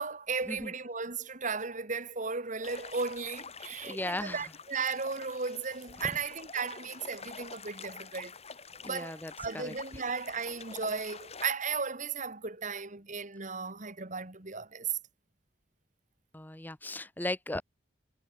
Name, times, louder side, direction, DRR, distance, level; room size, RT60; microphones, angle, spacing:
voice 1, 0.0-8.3 8.8-15.0, right 5 dB, 45° right, 2.3 m, -35 dB
sound 1, 2.6-11.5, left 5 dB, 35° left, 7.1 m, -47 dB
voice 2, 3.8-4.4 8.8-9.7 16.3-17.6, left 1 dB, 10° left, 1.0 m, -36 dB
head